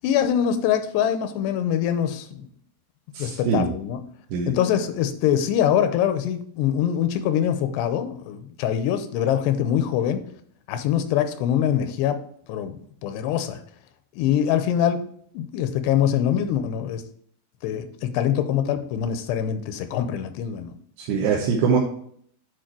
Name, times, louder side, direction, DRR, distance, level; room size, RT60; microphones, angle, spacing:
voice 1, 0.0-2.5 3.2-4.0 4.5-10.2 10.7-12.2 12.5-12.8 13.0-13.6 14.2-17.0 17.6-20.7, left 9 dB, 85° left, 9 dB, 2.9 m, -24 dB
voice 2, 3.1-3.7 4.3-4.5 21.0-21.8, right 5 dB, 80° right, -1 dB, 3.1 m, -22 dB
9.1 x 4.6 x 4.4 m, 0.62 s
omnidirectional pair, 4.8 m